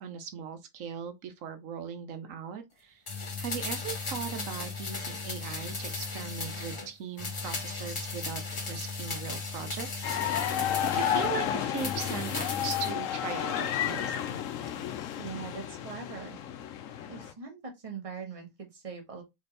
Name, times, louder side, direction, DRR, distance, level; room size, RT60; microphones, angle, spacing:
voice 1, 0.0-3.0 3.4-14.2, right 8 dB, 85° right, 1.1 m, -39 dB
sound 1, 3.1-6.9 7.2-11.3 11.7-13.0 13.3-13.4, left 4 dB, 30° left, 0.8 m, -36 dB
sound 2, 10.0-17.3, left 10 dB, 85° left, 1.0 m, -32 dB
voice 2, 15.2-16.4 17.1-19.2, right 5 dB, 25° right, 1.2 m, -41 dB
4.2 x 3.4 x 3.3 m
omnidirectional pair, 1.3 m